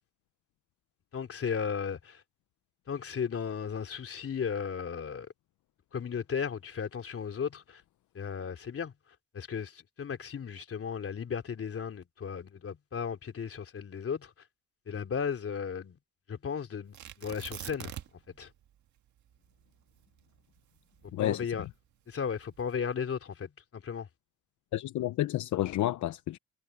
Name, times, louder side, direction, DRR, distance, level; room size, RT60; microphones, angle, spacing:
voice 1, 1.1-2.2 2.9-5.3 5.9-7.8 8.1-8.9 9.3-14.3 14.9-16.0 16.3-17.9 18.4-18.5 21.2-21.7 22.1-24.1, left 6 dB, 50° left, 3.5 m, -35 dB
Tearing, 16.9-18.3 18.6-18.7 19.3-21.6 22.3-22.8, right 11 dB, 70° right, 2.0 m, -44 dB
voice 2, 21.1-21.7 24.7-26.4, left 14 dB, 75° left, 0.8 m, -31 dB
cardioid pair, 90°, 30 cm